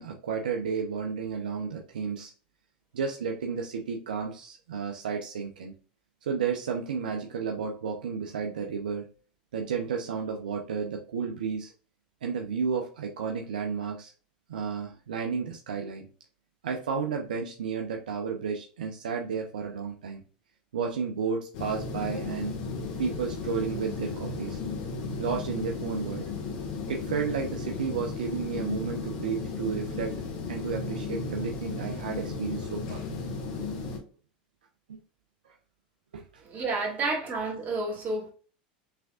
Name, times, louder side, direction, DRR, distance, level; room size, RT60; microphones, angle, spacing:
voice 1, 0.0-2.3 2.9-5.7 6.2-9.1 9.5-11.7 12.2-14.1 14.5-16.1 16.6-20.2 20.7-22.6 23.0-24.6 25.2-26.3 26.9-30.2 30.5-33.0 34.9-35.0 36.1-36.2, right 6 dB, 85° right, 0.7 m, -32 dB
sound 1, 21.5-34.0, left 4 dB, 65° left, 1.6 m, -35 dB
voice 2, 36.4-38.3, right 3 dB, 40° right, 2.4 m, -30 dB
5.7 x 3.6 x 2.4 m
hypercardioid pair, 95°, 5 cm